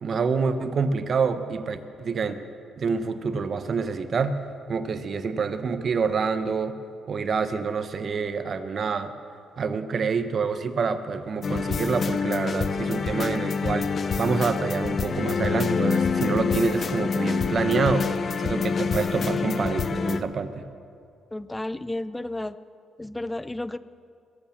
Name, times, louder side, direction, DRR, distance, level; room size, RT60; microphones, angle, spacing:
voice 1, 0.0-2.4 2.8-4.4 4.7-6.8 7.1-9.1 9.6-13.9 14.2-20.7, right 5 dB, 50° right, 10 dB, 1.1 m, -27 dB
sound 1, 10.4-19.3, right 4 dB, 80° right, 4.2 m, -53 dB
sound 2, 11.4-20.2, left 5 dB, 45° left, 0.8 m, -26 dB
voice 2, 19.2-19.7 21.3-22.6 23.0-23.8, left 1 dB, 10° left, 15 dB, 0.6 m, -33 dB
22.5 x 8.5 x 7.4 m, 2.5 s
cardioid pair, 90°, 0 cm